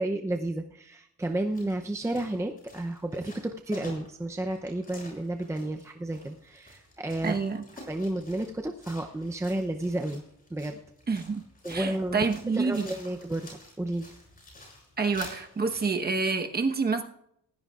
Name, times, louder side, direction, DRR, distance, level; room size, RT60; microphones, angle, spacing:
voice 1, 0.0-7.4 7.9-10.2 10.5-10.8 11.6-12.3 12.6-14.1, right 1 dB, 10° right, 3 dB, 0.6 m, -32 dB
sound 1, 1.2-15.9, left 1 dB, 25° left, 7.3 m, -49 dB
voice 2, 7.2-7.6 11.1-11.4 11.7-12.9 15.0-17.0, right 4 dB, 30° right, 5 dB, 1.2 m, -28 dB
19.5 x 16.5 x 2.4 m, 0.75 s
wide cardioid pair, 170°, 33 cm